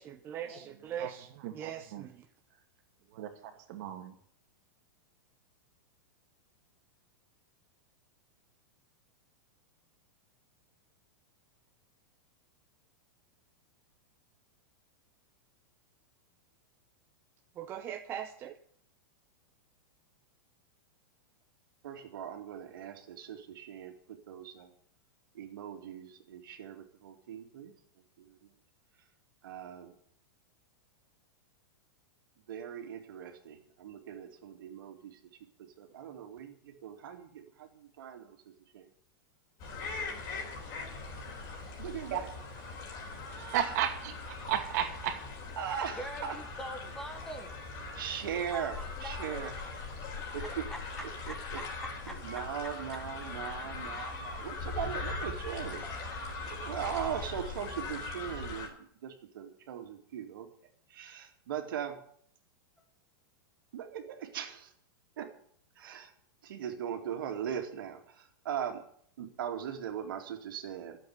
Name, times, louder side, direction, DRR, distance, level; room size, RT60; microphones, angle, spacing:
voice 1, 0.0-2.3 17.5-18.6, right 9 dB, 20° right, 0.8 m, -41 dB
voice 2, 3.7-4.1 42.1-42.2 43.4-45.2, right 10 dB, 45° right, 2.4 m, -33 dB
voice 3, 21.8-24.7 25.3-27.7 28.2-28.5 29.4-29.9 32.5-35.2 35.8-38.4 38.7-38.9 41.8-42.3 43.3-43.7 45.6-46.4 47.9-49.5 50.3-50.7 51.0-51.6 52.1-56.2 56.5-60.5 60.9-62.0 63.7-64.7 65.2-65.3 65.8-66.1 66.4-68.8 69.2-71.0, right 9 dB, 70° right, 2.5 m, -40 dB
sound 1, 39.6-58.7, left 3 dB, 35° left, 3.8 m, -40 dB
voice 4, 46.0-47.5 48.5-49.4 50.0-50.2 51.1-51.3 52.1-52.2, equal, 5° left, 1.1 m, -43 dB
12.0 x 7.8 x 9.6 m
supercardioid pair, 165°, 12 cm